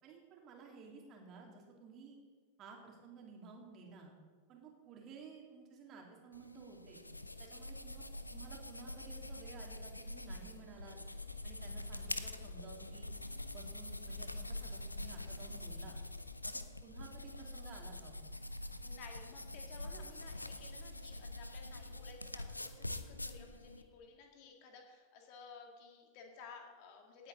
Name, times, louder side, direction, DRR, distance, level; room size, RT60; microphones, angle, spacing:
voice 1, 0.0-2.2 2.6-4.1 4.5-7.0 7.4-8.0 8.3-11.0 11.4-13.1 13.5-16.0 16.4-18.2, right 4 dB, 35° right, 0 dB, 2.7 m, -54 dB
sound 1, 6.3-23.8, left 2 dB, 85° left, 0.6 m, -45 dB
voice 2, 18.8-27.3, left 5 dB, 45° left, 2 dB, 2.3 m, -55 dB
17.5 x 8.4 x 4.0 m, 1.5 s
figure-of-eight pair, 90°, 0 cm